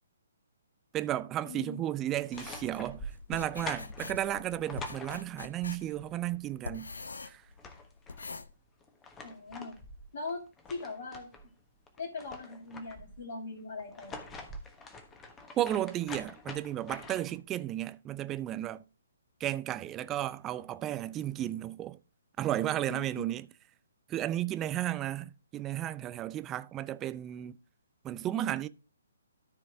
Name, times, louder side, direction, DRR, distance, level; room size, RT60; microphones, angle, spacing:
voice 1, 0.9-6.9 7.2-7.4 15.6-18.8 19.4-22.0 22.4-23.5 24.1-27.6 28.0-28.7, right 13 dB, 20° right, 0.4 m, -34 dB
voice 2, 1.4-1.8 9.2-9.8 10.1-10.4 10.7-11.3 12.0-14.3 22.9-23.3, left 3 dB, 55° left, 2.5 m, -40 dB
sound 1, 2.1-5.7 7.1-7.2 7.4-8.3 8.8-11.5 11.9-13.2 13.8-17.4, left 2 dB, 15° left, 1.2 m, -45 dB
sound 2, 2.3-8.5, left 4 dB, 75° left, 0.8 m, -44 dB
13.5 x 4.6 x 3.5 m
figure-of-eight pair, 135°, 0 cm